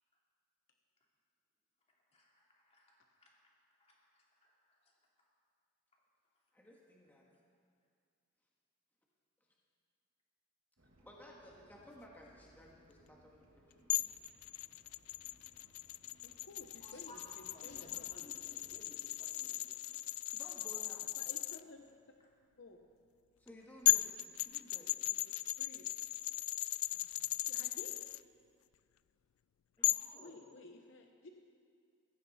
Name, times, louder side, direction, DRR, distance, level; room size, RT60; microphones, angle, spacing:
voice 1, 2.1-3.5 3.8-4.9 16.8-20.1 29.8-30.5, left 1 dB, 30° left, -3 dB, 2.6 m, -60 dB
voice 2, 6.5-7.2 11.0-14.2 20.3-21.3 23.4-25.2 26.9-27.1 29.8-30.0, equal, 10° left, -3 dB, 1.5 m, -57 dB
sound 1, 10.8-18.9, right 1 dB, 75° right, 1.7 m, -67 dB
sound 2, 13.9-21.6 23.5-23.6 23.9-28.2 29.8-30.1, left 17 dB, 85° left, 0.3 m, -37 dB
voice 3, 16.2-18.1 21.2-21.8 22.6-22.8 25.6-25.9 27.4-27.9 30.2-31.3, left 2 dB, 60° left, 3 dB, 0.8 m, -54 dB
15.5 x 15.0 x 4.1 m, 2.2 s
head